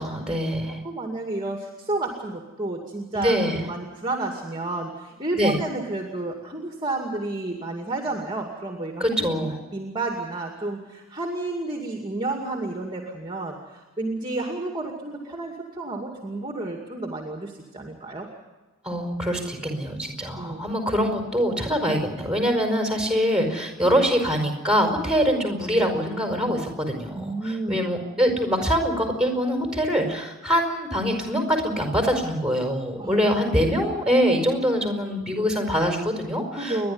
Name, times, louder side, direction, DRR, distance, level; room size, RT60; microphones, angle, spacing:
voice 1, 0.0-0.8 3.1-3.6 5.3-5.6 9.0-9.6 18.8-36.9, equal, 5° right, 4 dB, 4.9 m, -24 dB
voice 2, 0.8-3.3 3.7-9.3 9.7-18.3 20.3-20.6 27.1-27.8 33.0-33.2 36.6-36.9, right 2 dB, 20° right, 2 dB, 2.4 m, -31 dB
30.0 x 11.5 x 9.7 m, 1.2 s
head